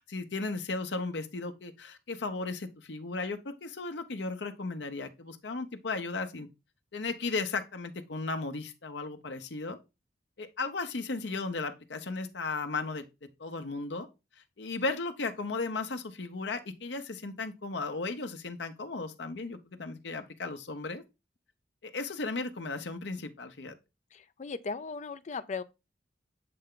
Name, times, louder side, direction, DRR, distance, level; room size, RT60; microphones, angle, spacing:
voice 1, 0.0-6.5 6.9-9.8 10.4-13.0 13.4-14.1 14.6-21.0 21.8-23.7, left 3 dB, 75° left, 0.8 m, -35 dB
voice 2, 24.1-25.6, left 4 dB, 40° left, 0.4 m, -37 dB
7.7 x 3.3 x 3.7 m
head